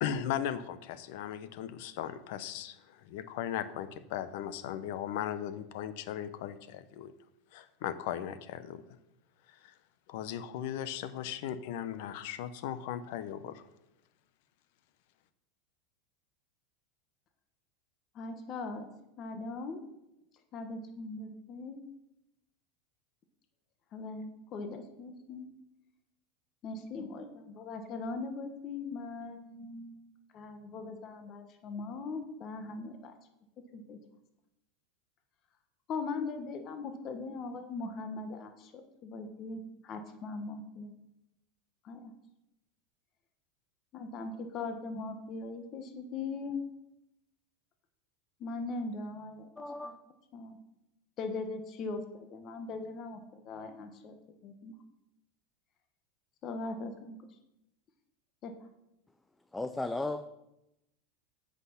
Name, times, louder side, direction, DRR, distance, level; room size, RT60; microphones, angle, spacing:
voice 1, 0.0-7.1 7.5-8.8 9.5-9.7 10.1-13.6, left 10 dB, 65° left, 13 dB, 0.7 m, -37 dB
voice 2, 18.1-18.8 19.2-19.8 20.5-21.8 23.9-25.5 26.6-30.0 30.3-33.1 33.7-34.0 35.9-38.7 39.0-40.9 41.8-42.1 43.9-46.6 48.4-49.9 50.3-50.6 51.2-54.2 54.4-54.7 56.4-57.2 58.4-58.5, left 3 dB, 45° left, 6 dB, 1.2 m, -40 dB
voice 3, 49.6-50.0 59.5-60.3, left 2 dB, 10° left, 8 dB, 0.5 m, -35 dB
8.2 x 6.0 x 5.8 m, 0.88 s
hypercardioid pair, 110°, 0 cm